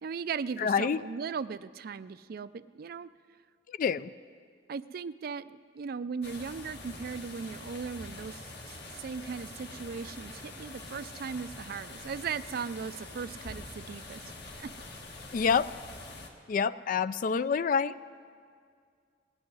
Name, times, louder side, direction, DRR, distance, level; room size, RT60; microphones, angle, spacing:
voice 1, 0.0-3.1 4.7-14.3 14.6-14.7, right 6 dB, 55° right, 15 dB, 0.4 m, -38 dB
voice 2, 0.6-1.0 3.8-4.1 15.3-15.7 16.5-18.0, left 6 dB, 45° left, 16 dB, 0.3 m, -27 dB
sound 1, 6.2-16.3, left 2 dB, 65° left, 1.5 m, -45 dB
18.5 x 6.3 x 9.7 m, 2.2 s
head